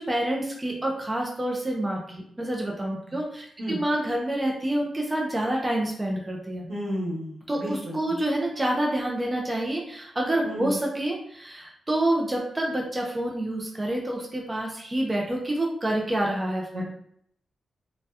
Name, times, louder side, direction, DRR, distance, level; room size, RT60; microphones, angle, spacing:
voice 1, 0.0-6.7 7.5-16.8, right 1 dB, 15° right, -1 dB, 0.5 m, -28 dB
voice 2, 6.7-8.2 10.4-10.7 16.7-16.8, equal, 80° right, -9 dB, 1.2 m, -32 dB
2.7 x 2.2 x 3.3 m, 0.68 s
wide cardioid pair, 130°, 0 cm